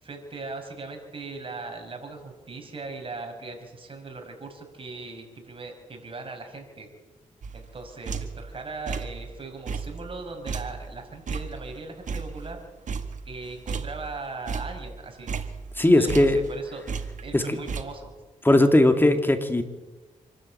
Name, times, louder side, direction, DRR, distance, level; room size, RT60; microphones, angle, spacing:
voice 1, 0.0-6.9 7.5-12.6 13.2-15.3 15.9-16.8 17.2-18.1, right 3 dB, 40° right, 3 dB, 5.2 m, -39 dB
sound 1, 7.4-8.5 8.9-9.3 9.7-12.6 12.9-14.2 14.5-16.6 16.9-17.8, right 5 dB, 70° right, 1.7 m, -34 dB
voice 2, 15.8-16.4 17.3-17.6 18.4-19.6, left 1 dB, 15° left, 7 dB, 2.4 m, -19 dB
26.0 x 12.5 x 8.6 m, 1.2 s
cardioid pair, 75°, 13 cm